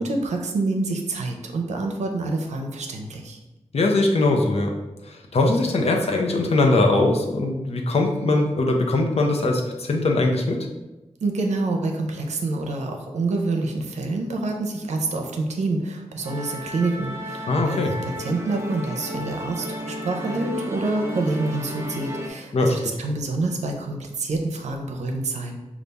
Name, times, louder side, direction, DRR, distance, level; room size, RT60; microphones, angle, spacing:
voice 1, 0.0-3.4 11.2-25.6, right 2 dB, 90° right, 3 dB, 0.6 m, -27 dB
voice 2, 3.7-4.7 5.1-10.7 17.5-17.9 22.5-22.7, left 2 dB, 65° left, 1 dB, 0.7 m, -21 dB
Musical instrument, 16.2-22.3, equal, 20° right, 0.8 m, -33 dB
5.3 x 2.4 x 3.4 m, 1.1 s
wide cardioid pair, 85°, 11 cm